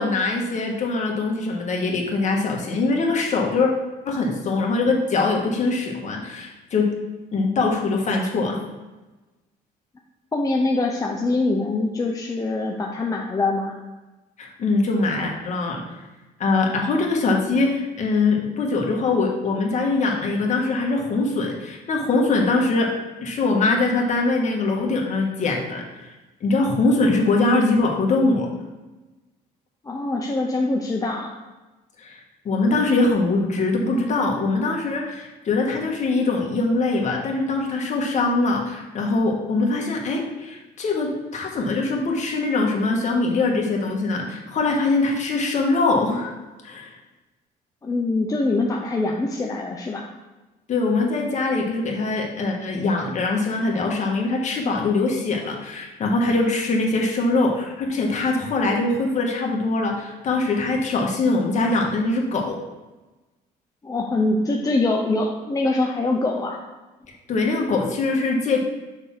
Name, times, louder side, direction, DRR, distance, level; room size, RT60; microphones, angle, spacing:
voice 1, 0.0-3.7 4.1-6.9 7.3-8.6 14.4-15.8 16.4-22.9 23.2-26.1 26.4-28.5 32.0-46.3 46.6-46.9 50.7-62.6 67.3-68.6, left 3 dB, 45° left, 0 dB, 1.6 m, -22 dB
voice 2, 10.3-13.7 29.8-31.3 47.8-50.1 63.8-66.6, left 2 dB, 20° left, 0 dB, 0.7 m, -23 dB
6.7 x 3.6 x 5.9 m, 1.1 s
cardioid pair, 110°, 17 cm